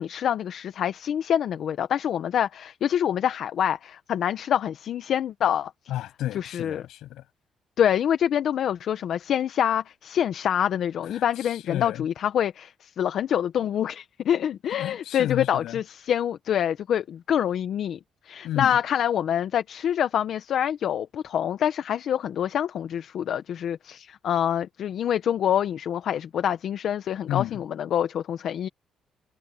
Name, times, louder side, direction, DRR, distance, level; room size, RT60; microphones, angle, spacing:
voice 1, 0.0-5.7 6.3-6.9 7.8-18.0 18.2-28.7, left 9 dB, 70° left, 1.1 m, -26 dB
voice 2, 5.9-7.2 11.1-11.2 11.7-12.0 14.7-15.8 18.4-18.8 27.3-27.6, left 13 dB, 85° left, 7.5 m, -31 dB
cardioid pair, 90°, 0 cm